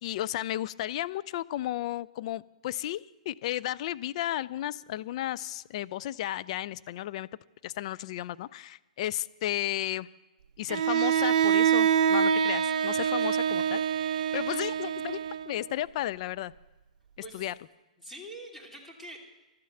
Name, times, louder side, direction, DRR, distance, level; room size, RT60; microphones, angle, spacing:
voice 1, 0.0-7.3 7.6-10.1 10.6-13.8 14.3-16.5 17.3-17.5, left 13 dB, 50° left, 16 dB, 0.4 m, -33 dB
Bowed string instrument, 10.7-15.7, right 8 dB, 60° right, 0.7 m, -25 dB
voice 2, 13.1-13.9 14.1-14.3 17.2-17.5 18.0-19.2, right 1 dB, 5° left, -2 dB, 2.9 m, -46 dB
12.5 x 9.4 x 7.8 m, 1.1 s
hypercardioid pair, 125°, 4 cm